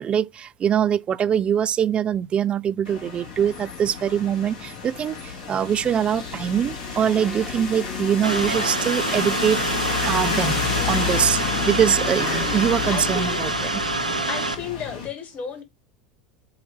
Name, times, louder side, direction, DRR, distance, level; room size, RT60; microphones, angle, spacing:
voice 1, 0.0-10.6 10.9-11.4 11.7-13.8, right 9 dB, 30° right, 0.4 m, -23 dB
sound 1, 2.8-15.1, left 6 dB, 70° left, 2.6 m, -30 dB
sound 2, 6.4-9.4, left 1 dB, 5° left, 0.8 m, -43 dB
sound 3, 8.2-14.5, right 2 dB, 90° right, 0.7 m, -26 dB
voice 2, 12.9-13.4 14.3-15.6, left 6 dB, 40° left, 2.0 m, -32 dB
7.8 x 2.7 x 5.2 m
figure-of-eight pair, 80°, 4 cm